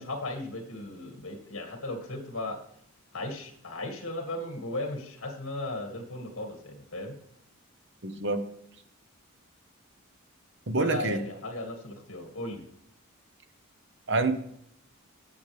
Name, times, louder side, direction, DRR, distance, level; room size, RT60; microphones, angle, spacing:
voice 1, 0.0-2.6 3.1-7.1 10.8-12.7, left 2 dB, 65° left, 4 dB, 2.1 m, -36 dB
voice 2, 8.0-8.4 10.7-11.2 14.1-14.3, right 3 dB, 55° right, 8 dB, 1.0 m, -26 dB
17.5 x 7.1 x 3.4 m, 0.72 s
head